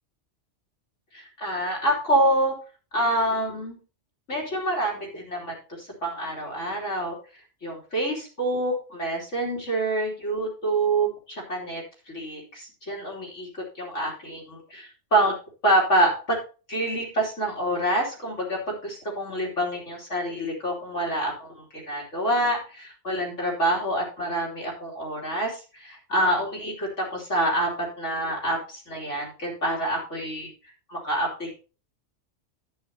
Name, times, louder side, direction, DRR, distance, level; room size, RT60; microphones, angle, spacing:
voice 1, 1.1-2.5 2.9-3.8 4.3-7.2 7.6-11.8 12.1-13.5 13.8-15.3 15.6-16.4 16.7-30.5 30.9-31.5, right 1 dB, 85° left, -2 dB, 3.6 m, -27 dB
11.5 x 9.4 x 2.8 m, 0.34 s
omnidirectional pair, 1.2 m